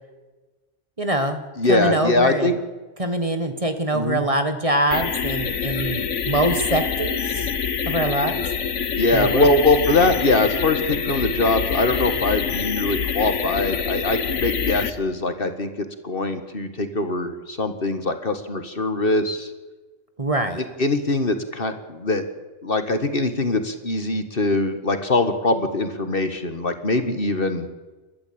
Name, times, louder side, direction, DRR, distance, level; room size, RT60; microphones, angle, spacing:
voice 1, 1.0-1.4 1.7-2.6 3.0-7.4 7.9-8.4 9.1-9.5 20.2-20.6, right 1 dB, 30° right, 7 dB, 1.6 m, -24 dB
voice 2, 1.6-2.5 3.9-4.2 9.0-19.5 20.6-22.2 22.6-27.7, left 2 dB, 50° left, 8 dB, 1.8 m, -22 dB
sound 1, 4.9-14.9, left 7 dB, 75° left, 1.5 m, -26 dB
29.5 x 12.5 x 8.7 m, 1.2 s
omnidirectional pair, 1.3 m